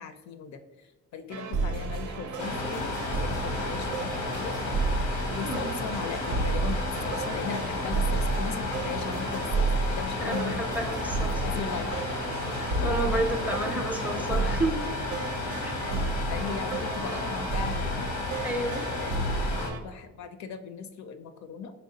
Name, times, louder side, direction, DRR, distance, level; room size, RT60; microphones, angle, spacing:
voice 1, 0.0-4.6 5.3-10.9 11.4-11.9 12.8-13.7 14.2-14.7 16.3-18.1 18.8-21.7, left 6 dB, 65° left, 9 dB, 0.5 m, -38 dB
sound 1, 1.3-19.8, right 3 dB, 90° right, 0.5 m, -32 dB
sound 2, 2.4-19.7, left 3 dB, 90° left, 0.8 m, -33 dB
voice 2, 5.4-5.8 10.2-11.6 12.8-14.9 15.6-15.7 18.4-18.9, right 1 dB, 5° right, 4 dB, 0.4 m, -31 dB
4.1 x 3.3 x 2.7 m, 1.2 s
cardioid pair, 90°, 30 cm